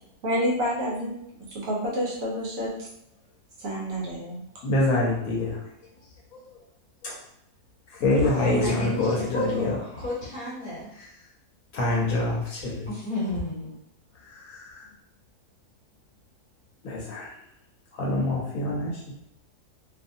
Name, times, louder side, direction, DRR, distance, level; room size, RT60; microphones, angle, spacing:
voice 1, 0.2-1.2 1.5-2.9 3.6-4.4, equal, 70° right, -4 dB, 1.1 m, -28 dB
voice 2, 4.6-5.6 6.3-6.4 7.0-7.1 7.9-9.8 10.9-11.1 11.7-12.9 14.3-14.9 16.8-17.3 17.9-19.0, left 2 dB, 70° left, -3 dB, 1.0 m, -26 dB
voice 3, 8.2-10.9 12.9-13.7, left 1 dB, 15° left, -10 dB, 1.5 m, -32 dB
2.6 x 2.5 x 2.6 m, 0.77 s
omnidirectional pair, 1.6 m